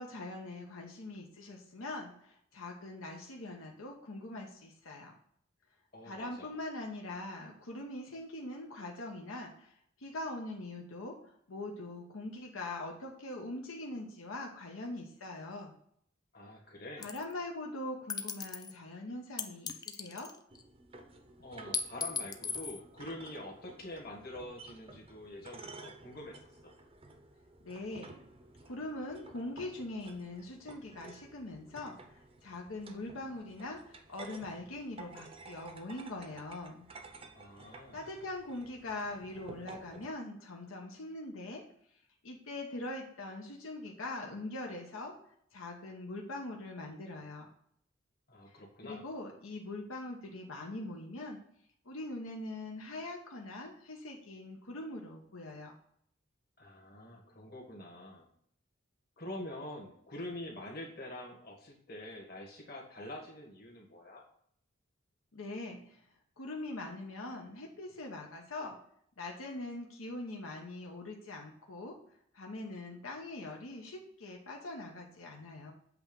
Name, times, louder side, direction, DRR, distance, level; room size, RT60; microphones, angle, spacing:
voice 1, 0.0-5.1 6.0-15.7 17.0-20.3 27.6-28.1 28.6-36.9 37.6-41.6 42.2-45.1 45.5-47.5 48.5-51.4 51.8-55.8 65.3-66.0 66.4-68.8 69.2-72.0 72.3-75.7, left 2 dB, 90° left, 0 dB, 1.0 m, -42 dB
voice 2, 5.9-6.5 16.3-17.1 21.4-26.4 26.6-26.7 37.3-38.0 48.3-49.0 56.6-58.3 59.2-64.2, left 1 dB, 50° left, 0 dB, 1.6 m, -45 dB
sound 1, 17.0-17.3 18.1-18.7 19.4-20.6 21.7-22.8, left 6 dB, 20° left, 0.3 m, -37 dB
sound 2, 20.5-40.1, right 3 dB, 30° right, 0.6 m, -53 dB
7.9 x 3.0 x 5.2 m, 0.66 s
head